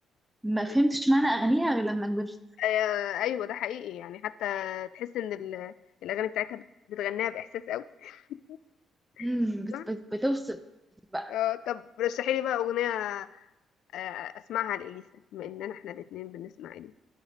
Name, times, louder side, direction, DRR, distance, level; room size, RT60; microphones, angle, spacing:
voice 1, 0.4-2.4 9.2-10.6 11.1-11.3, right 1 dB, 10° right, 9 dB, 0.5 m, -27 dB
voice 2, 2.6-5.7 6.0-8.6 9.2-9.3 9.7-9.8 11.3-13.4 13.9-15.1 15.3-16.9, left 12 dB, 85° left, 16 dB, 0.3 m, -32 dB
13.0 x 4.9 x 4.1 m, 0.98 s
cardioid pair, 90°, 0 cm